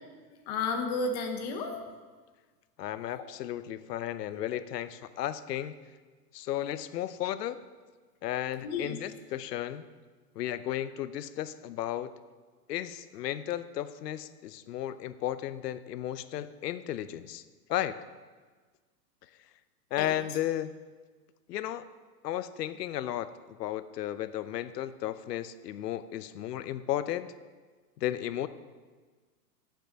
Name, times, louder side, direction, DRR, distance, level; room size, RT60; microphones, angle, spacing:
voice 1, 0.3-1.8 3.0-3.2 4.3-4.4 8.6-9.0 20.0-20.1, left 3 dB, 25° left, 5 dB, 0.8 m, -33 dB
voice 2, 2.8-5.8 6.3-7.6 8.2-9.8 10.4-12.1 12.7-17.4 17.7-18.0 19.9-20.7 21.5-21.8 22.2-23.3 23.6-27.3 28.0-28.5, left 12 dB, 80° left, 13 dB, 0.7 m, -34 dB
6.9 x 6.0 x 7.3 m, 1.4 s
hypercardioid pair, 165°, 47 cm